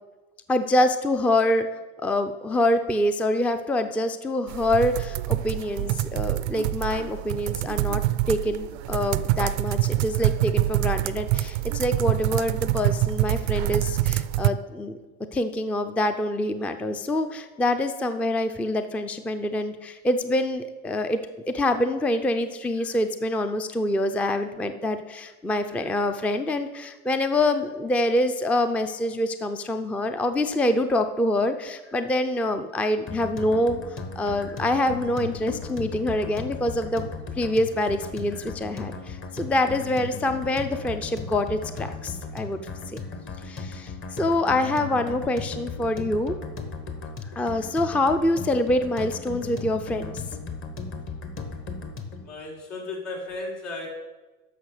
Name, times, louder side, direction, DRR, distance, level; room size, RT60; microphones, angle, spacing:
voice 1, 0.5-1.7 2.0-8.0 8.3-15.0 15.3-21.2 21.5-37.1 37.4-42.6 43.4-46.3 47.4-50.2, left 1 dB, 5° left, 9 dB, 0.4 m, -25 dB
sound 1, 4.5-14.5, right 15 dB, 70° right, 0.5 m, -26 dB
sound 2, 33.1-52.3, left 4 dB, 35° left, 1.3 m, -36 dB
voice 2, 52.1-53.9, left 2 dB, 75° left, -1 dB, 3.9 m, -35 dB
10.0 x 6.4 x 6.5 m, 1.2 s
supercardioid pair, 115°, 36 cm